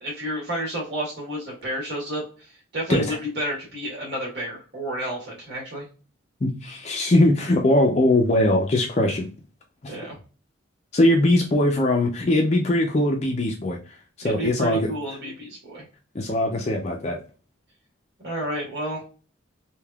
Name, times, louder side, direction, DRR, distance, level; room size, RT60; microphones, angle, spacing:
voice 1, 0.0-5.8 9.9-10.2 14.4-15.8 18.2-19.0, right 1 dB, 55° right, -4 dB, 1.4 m, -31 dB
voice 2, 6.4-9.3 9.8-9.9 10.9-13.8 14.2-14.9 16.1-17.2, left 1 dB, 35° left, 2 dB, 0.4 m, -21 dB
3.4 x 2.8 x 2.2 m, 0.35 s
head